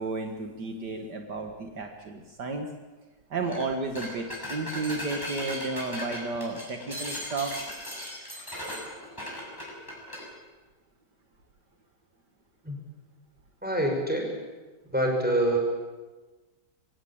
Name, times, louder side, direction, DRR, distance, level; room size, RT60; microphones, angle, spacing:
voice 1, 0.0-2.7 3.3-7.5, right 3 dB, 65° right, 4 dB, 2.2 m, -32 dB
sound 1, 3.4-3.7 3.9-10.3, equal, 10° left, 6.6 m, -37 dB
voice 2, 13.6-14.3 14.9-15.6, right 1 dB, 5° right, 1 dB, 5.8 m, -25 dB
23.5 x 17.5 x 8.8 m, 1.2 s
omnidirectional pair, 2.0 m